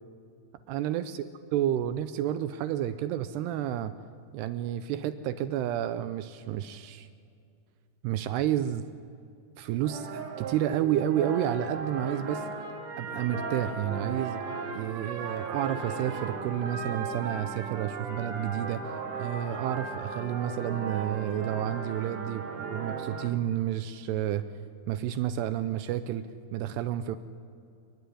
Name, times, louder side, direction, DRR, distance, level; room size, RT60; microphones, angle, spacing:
voice 1, 0.7-1.2 1.5-3.9 4.3-7.1 8.0-8.9 9.6-12.5 13.0-14.4 14.8-24.5 24.9-27.2, right 11 dB, 80° right, 12 dB, 2.6 m, -30 dB
sound 1, 9.8-23.3, right 4 dB, 55° right, 3.2 m, -36 dB
29.5 x 11.5 x 9.9 m, 2.4 s
omnidirectional pair, 5.0 m